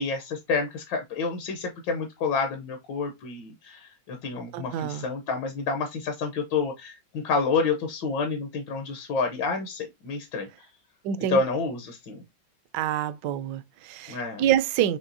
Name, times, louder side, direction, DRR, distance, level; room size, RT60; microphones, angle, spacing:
voice 1, 0.0-10.5 11.3-12.2 14.1-14.4, left 4 dB, 75° left, 1.5 m, -29 dB
voice 2, 4.5-5.1 11.0-11.4 12.7-15.0, right 10 dB, 75° right, 1.1 m, -27 dB
6.0 x 3.2 x 2.6 m
omnidirectional pair, 2.1 m